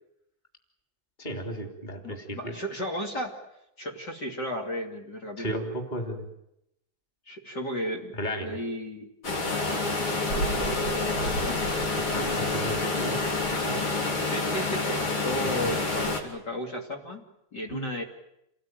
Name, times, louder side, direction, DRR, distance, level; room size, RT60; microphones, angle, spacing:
voice 1, 1.2-2.5 5.4-6.3 8.2-8.6 12.0-13.3 13.6-13.8 15.6-15.8 17.7-17.9, right 1 dB, 20° left, 3 dB, 3.4 m, -34 dB
voice 2, 2.0-3.4 3.8-5.5 7.3-9.1 10.3-11.7 14.2-17.2 17.5-18.0, equal, 50° left, 0 dB, 3.4 m, -34 dB
sound 1, 9.2-16.2, left 2 dB, 75° left, 4.3 m, -28 dB
29.0 x 19.5 x 9.3 m, 0.83 s
omnidirectional pair, 2.3 m